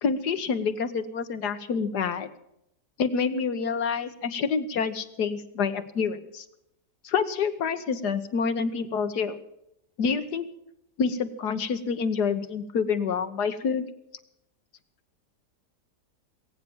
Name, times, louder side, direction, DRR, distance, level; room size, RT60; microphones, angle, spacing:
voice 1, 0.0-2.3 3.0-6.5 7.0-9.4 10.0-10.5 11.0-13.8, left 5 dB, 80° left, 10 dB, 1.8 m, -27 dB
20.5 x 9.2 x 7.2 m, 0.79 s
omnidirectional pair, 1.7 m